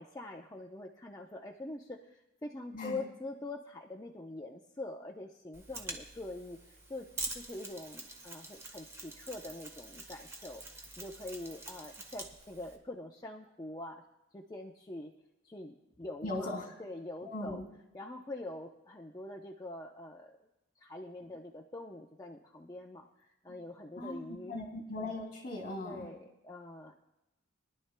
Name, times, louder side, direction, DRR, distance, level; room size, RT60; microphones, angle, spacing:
voice 1, 0.0-7.1 7.3-14.0 14.3-15.1 15.4-16.5 16.8-17.6 17.9-20.4 20.8-24.6 25.8-26.9, left 2 dB, 20° left, 0 dB, 0.7 m, -44 dB
Mechanisms, 5.5-12.8, right 2 dB, 15° right, 1.3 m, -45 dB
voice 2, 16.2-16.7 17.2-17.6 24.0-26.1, left 1 dB, 45° left, 1 dB, 2.7 m, -39 dB
23.5 x 11.5 x 2.2 m, 0.95 s
head